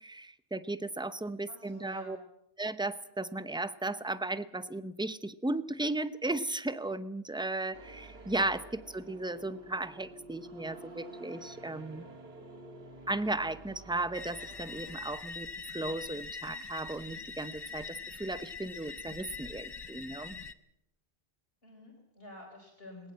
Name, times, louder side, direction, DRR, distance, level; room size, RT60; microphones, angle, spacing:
voice 1, 0.0-2.2 2.6-12.1 13.1-15.5 15.7-20.4, right 2 dB, 5° right, 13 dB, 0.7 m, -35 dB
voice 2, 1.5-2.2 21.6-23.1, left 2 dB, 65° left, -1 dB, 4.6 m, -50 dB
sound 1, 7.7-15.6, right 2 dB, 90° right, 2.0 m, -50 dB
sound 2, 14.1-20.5, left 4 dB, 25° left, 0.8 m, -43 dB
21.0 x 19.5 x 7.7 m, 0.82 s
omnidirectional pair, 1.0 m